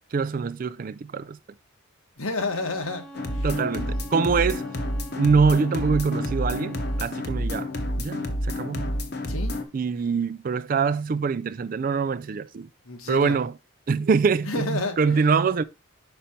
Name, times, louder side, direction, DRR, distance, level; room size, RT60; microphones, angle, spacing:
voice 1, 0.1-1.4 3.4-4.6 5.2-7.7 8.0-9.0 9.7-12.7 13.1-13.5 13.9-15.6, right 5 dB, 40° right, 0.3 m, -24 dB
voice 2, 2.2-3.5 3.7-4.0 7.4-7.7 9.3-9.6 12.8-13.4 14.5-15.0, left 2 dB, 90° left, 1.3 m, -31 dB
Bowed string instrument, 2.4-7.2, right 2 dB, ahead, 0.7 m, -45 dB
sound 1, 3.1-9.6, left 1 dB, 50° left, 0.9 m, -29 dB
5.7 x 5.1 x 4.2 m
head